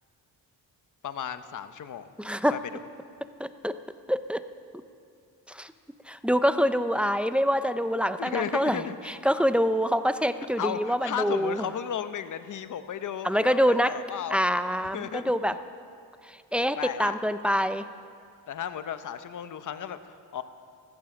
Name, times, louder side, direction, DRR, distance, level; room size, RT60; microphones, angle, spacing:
voice 1, 1.0-2.1 2.5-2.6 8.2-9.2 10.6-14.4 14.9-15.3 16.8-17.2 18.5-20.4, left 8 dB, 50° left, 11 dB, 0.9 m, -34 dB
voice 2, 2.2-2.6 3.4-3.7 4.1-4.4 5.5-5.7 6.1-11.6 13.2-13.9 14.3-15.6 16.3-17.8, equal, 5° right, 11 dB, 0.4 m, -25 dB
15.5 x 14.5 x 6.3 m, 2.4 s
cardioid pair, 120°, 38 cm